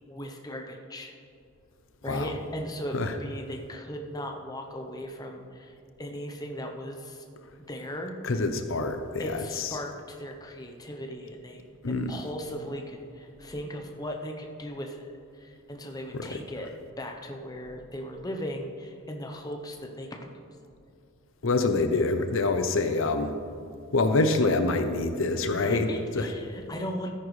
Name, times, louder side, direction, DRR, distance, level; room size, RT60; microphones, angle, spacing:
voice 1, 0.1-1.1 2.0-7.2 7.7-8.2 9.2-16.7 17.0-20.1 25.6-27.1, equal, 15° left, 3 dB, 0.8 m, -37 dB
voice 2, 8.2-9.8 11.8-12.1 16.1-16.4 21.4-23.3 23.9-26.3, left 3 dB, 65° left, 7 dB, 0.7 m, -26 dB
13.5 x 10.0 x 3.2 m, 2.4 s
head